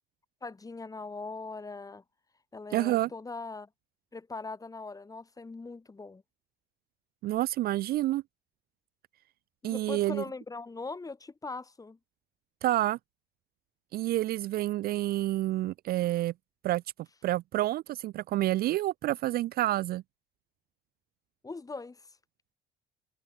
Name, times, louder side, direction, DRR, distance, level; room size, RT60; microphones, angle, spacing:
voice 1, 0.4-2.0 2.5-3.7 4.1-6.2 9.6-12.0 21.4-22.2, left 3 dB, 20° left, 4.6 m, -41 dB
voice 2, 2.7-3.1 7.2-8.2 9.6-10.2 12.6-13.0 13.9-16.3 16.6-16.8 17.2-20.0, right 15 dB, 55° right, 0.4 m, -28 dB
cardioid pair, 110°, 19 cm